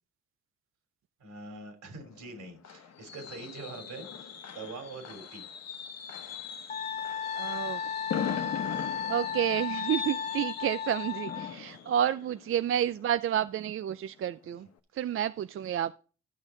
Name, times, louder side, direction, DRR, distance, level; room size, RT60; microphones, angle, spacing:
voice 1, 1.2-5.5, right 3 dB, 75° right, 5 dB, 3.3 m, -44 dB
Fireworks, 2.0-13.7 14.1-14.3 14.6-14.7, left 8 dB, 55° left, 1.1 m, -40 dB
Wind instrument woodwind instrument, 6.7-11.6, left 7 dB, 25° left, 0.3 m, -35 dB
voice 2, 7.3-7.8 9.1-14.7 14.9-15.9, right 10 dB, 45° right, 13 dB, 0.4 m, -30 dB
13.0 x 6.2 x 3.8 m, 0.38 s
cardioid pair, 90°, 30 cm